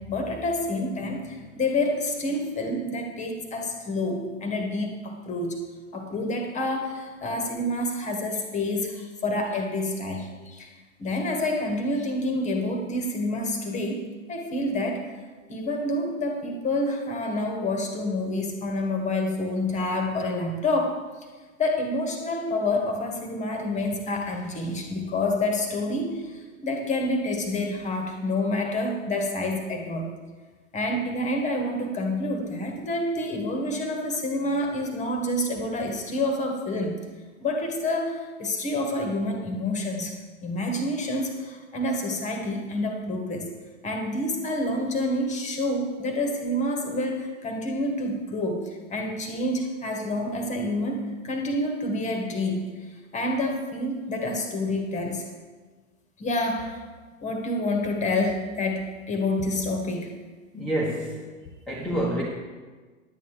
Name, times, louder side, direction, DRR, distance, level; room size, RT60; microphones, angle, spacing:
voice 1, 0.1-5.6 5.9-10.7 11.0-15.0 15.5-21.3 21.6-30.1 30.7-37.0 37.4-40.2 40.4-43.5 43.8-55.3 56.2-56.8 57.2-60.1, left 1 dB, 15° left, 3 dB, 1.5 m, -28 dB
voice 2, 60.5-61.2 61.7-62.2, right 1 dB, ahead, -5 dB, 1.1 m, -27 dB
11.0 x 8.6 x 4.9 m, 1.4 s
figure-of-eight pair, 105°, 41 cm